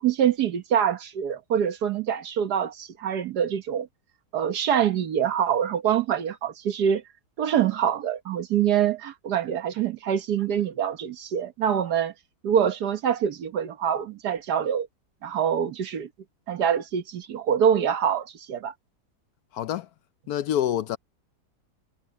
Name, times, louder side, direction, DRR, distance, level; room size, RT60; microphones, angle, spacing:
voice 1, 0.0-3.9 4.3-7.0 7.4-12.1 12.4-14.9 15.2-16.1 16.5-18.7, right 9 dB, 70° right, 1.6 m, -25 dB
voice 2, 19.5-19.9 20.3-21.0, left 11 dB, 70° left, 1.0 m, -26 dB
omnidirectional pair, 1.8 m